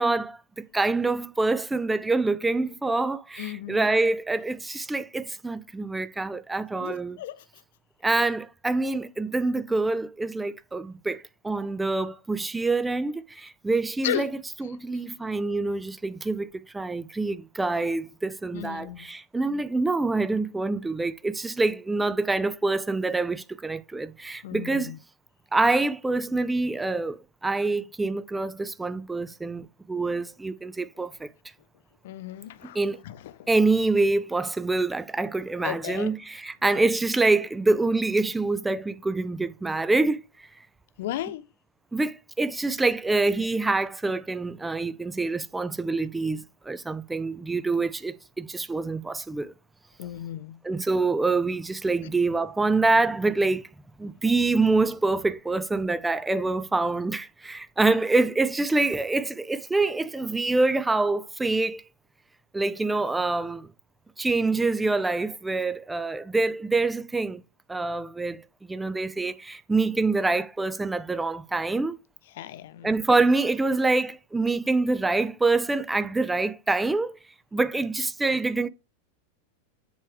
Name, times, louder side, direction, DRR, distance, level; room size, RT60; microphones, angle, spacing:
voice 1, 0.0-7.2 8.0-16.5 16.7-24.9 25.5-31.3 32.6-33.0 33.5-40.5 41.9-49.5 50.6-53.7 54.0-61.8 62.5-63.7 64.2-67.4 67.7-72.0 72.8-77.2 77.5-78.7, right 3 dB, 10° right, 0.5 m, -26 dB
voice 2, 3.4-3.9 6.8-7.4 14.0-14.3 18.5-19.1 24.4-25.0 32.0-32.8 33.0-33.5 35.6-36.1 41.0-41.4 50.0-50.6 52.0-52.1 72.4-72.9, left 12 dB, 55° left, 0.6 m, -34 dB
7.3 x 4.5 x 4.7 m
figure-of-eight pair, 90°, 0 cm